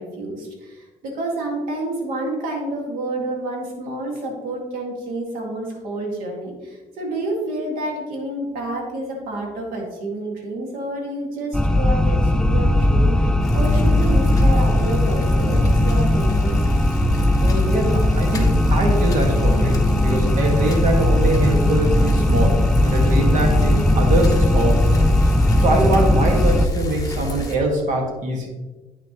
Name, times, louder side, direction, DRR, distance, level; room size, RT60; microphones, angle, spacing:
voice 1, 0.0-16.7, right 1 dB, 80° right, 0 dB, 2.1 m, -29 dB
sound 1, 11.5-26.7, left 1 dB, 5° left, 0.3 m, -18 dB
Bicycle, 13.4-27.5, left 2 dB, 25° left, 1.1 m, -30 dB
voice 2, 17.4-25.0 25.6-28.5, right 1 dB, 60° right, 1 dB, 1.8 m, -23 dB
8.7 x 6.3 x 3.0 m, 1.2 s
cardioid pair, 140°, 14 cm